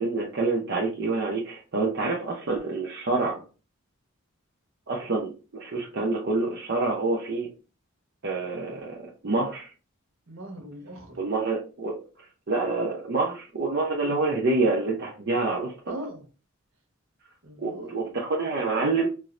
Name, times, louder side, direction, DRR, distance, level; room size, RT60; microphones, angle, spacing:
voice 1, 0.0-3.4 4.9-7.5 8.2-9.0 9.2-9.7 11.2-15.7 17.6-19.1, right 3 dB, 55° right, -3 dB, 0.6 m, -27 dB
voice 2, 10.3-11.2 15.9-16.3 17.4-18.2, right 1 dB, 70° right, 1 dB, 1.1 m, -40 dB
4.5 x 2.1 x 2.4 m, 0.34 s
head